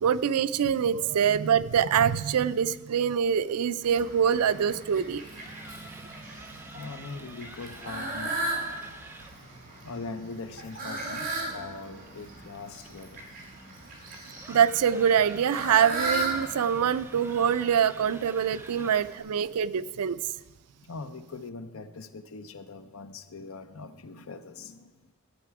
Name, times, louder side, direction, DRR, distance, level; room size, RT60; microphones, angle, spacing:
voice 1, 0.0-5.2 14.5-20.2, right 8 dB, 90° right, 16 dB, 0.4 m, -24 dB
Fowl, 3.8-19.2, right 2 dB, 40° right, 3.6 m, -37 dB
sound 1, 5.3-9.4 12.0-19.3, right 2 dB, 10° right, 0.5 m, -48 dB
voice 2, 6.7-8.9 9.8-11.3 11.5-13.3 18.8-18.9 20.8-25.1, left 3 dB, 65° left, 10 dB, 0.7 m, -42 dB
14.5 x 8.3 x 4.8 m, 1.2 s
head